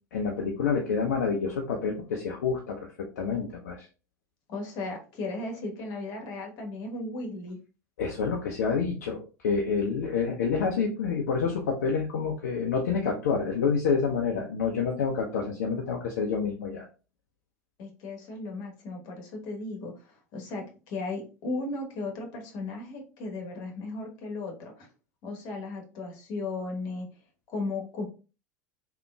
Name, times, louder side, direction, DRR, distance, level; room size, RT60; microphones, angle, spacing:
voice 1, 0.1-3.9 8.0-16.9, left 5 dB, 65° left, 1 dB, 0.6 m, -28 dB
voice 2, 4.5-7.6 17.8-24.9 25.2-27.1 27.5-28.0, left 2 dB, 45° left, 2 dB, 1.1 m, -36 dB
3.6 x 2.8 x 2.3 m, 0.34 s
figure-of-eight pair, 75°, 9 cm